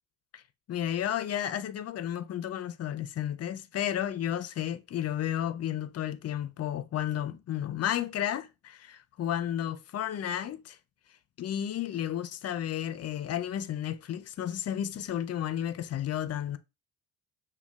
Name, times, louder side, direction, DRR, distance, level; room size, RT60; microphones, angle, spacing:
voice 1, 0.7-10.8 11.4-16.6, left 10 dB, 55° left, 0.6 m, -32 dB
6.1 x 2.3 x 3.5 m
cardioid pair, 90°, 30 cm